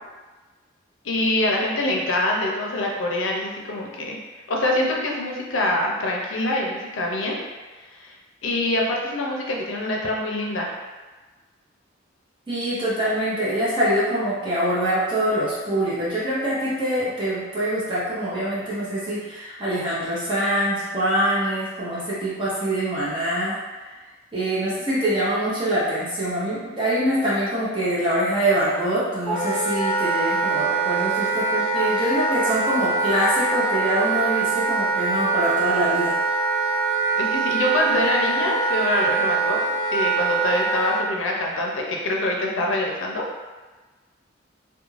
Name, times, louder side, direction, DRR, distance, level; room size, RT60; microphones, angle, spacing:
voice 1, 1.0-4.2 4.5-7.4 7.9-8.1 8.4-10.8 37.2-39.6 39.9-43.2, left 1 dB, 80° left, -1 dB, 0.5 m, -25 dB
voice 2, 12.5-23.8 24.3-36.1, right 1 dB, 25° right, -10 dB, 0.6 m, -24 dB
Wind instrument woodwind instrument, 29.2-41.1, right 4 dB, 5° left, 1.1 m, -23 dB
2.4 x 2.2 x 3.1 m, 1.3 s
head